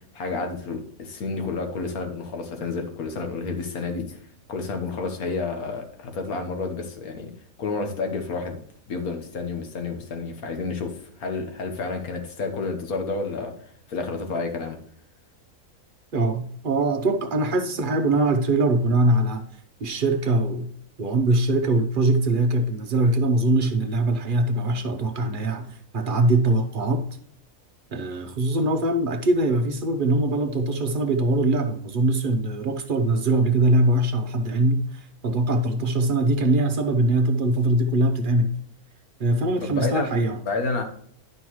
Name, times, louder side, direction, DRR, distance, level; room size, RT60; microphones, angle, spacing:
voice 1, 0.1-4.2 4.5-7.3 7.6-8.6 8.9-13.5 13.9-14.8 39.6-40.1 40.4-40.8, left 4 dB, 80° left, 1.6 m, -30 dB
voice 2, 16.1-19.5 19.8-20.7 21.0-27.0 27.9-38.5 39.2-40.4, right 2 dB, 45° right, 0.8 m, -22 dB
11.0 x 5.4 x 3.0 m
omnidirectional pair, 1.5 m